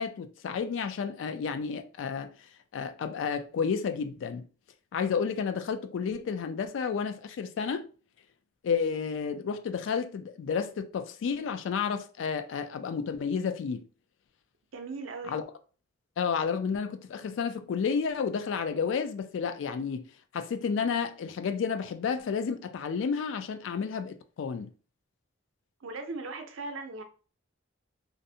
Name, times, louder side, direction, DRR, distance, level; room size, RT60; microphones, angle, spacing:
voice 1, 0.0-2.3 2.7-4.5 4.9-7.8 8.6-13.8 15.3-15.4 16.2-24.7, left 6 dB, 70° left, 0.3 m, -31 dB
voice 2, 14.7-15.4 25.8-27.0, right 3 dB, 85° right, 0.5 m, -38 dB
2.5 x 2.0 x 2.6 m
head